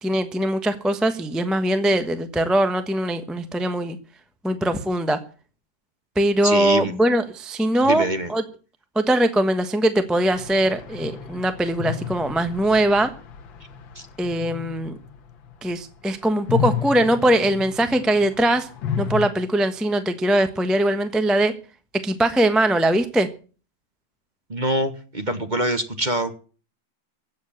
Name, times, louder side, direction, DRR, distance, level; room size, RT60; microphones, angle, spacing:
voice 1, 0.0-4.0 4.4-5.2 6.2-8.4 8.9-13.1 14.2-15.0 15.6-18.7 19.0-21.5 22.0-23.3, right 1 dB, ahead, 8 dB, 0.9 m, -21 dB
voice 2, 6.4-6.9 7.8-8.3 13.9-14.0 24.5-26.4, right 1 dB, 25° right, 8 dB, 1.3 m, -25 dB
sound 1, 10.3-16.0 16.3-19.3, left 8 dB, 85° left, 2.0 m, -32 dB
15.5 x 7.9 x 8.7 m, 0.39 s
omnidirectional pair, 2.1 m